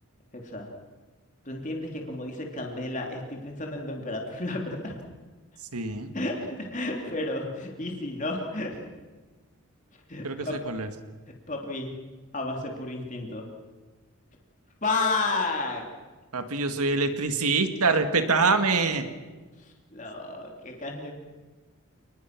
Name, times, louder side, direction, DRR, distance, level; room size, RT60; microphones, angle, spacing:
voice 1, 0.3-0.7 1.4-4.9 6.1-8.8 10.1-10.6 11.5-11.9 12.3-13.5 14.8-15.8 19.6-21.1, left 2 dB, 35° left, 1 dB, 3.1 m, -32 dB
voice 2, 5.6-6.1 10.2-10.9 16.3-19.1, right 4 dB, 90° right, 8 dB, 2.0 m, -25 dB
29.0 x 20.0 x 6.1 m, 1.3 s
head